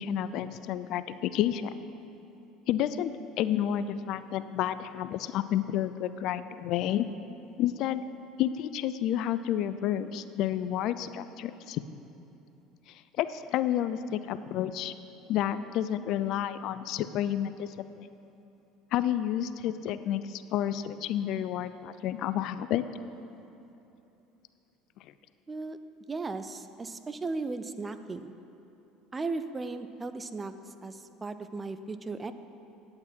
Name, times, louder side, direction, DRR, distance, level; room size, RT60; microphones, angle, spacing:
voice 1, 0.0-1.7 2.7-7.1 7.6-8.0 8.4-11.8 12.9-14.9 15.3-18.1 18.9-22.8, left 11 dB, 60° left, 13 dB, 0.3 m, -30 dB
voice 2, 25.5-25.8 26.1-28.4 29.1-30.5 30.8-32.3, right 3 dB, 25° right, 11 dB, 0.5 m, -36 dB
9.6 x 8.6 x 4.5 m, 2.9 s
hypercardioid pair, 80°, 0 cm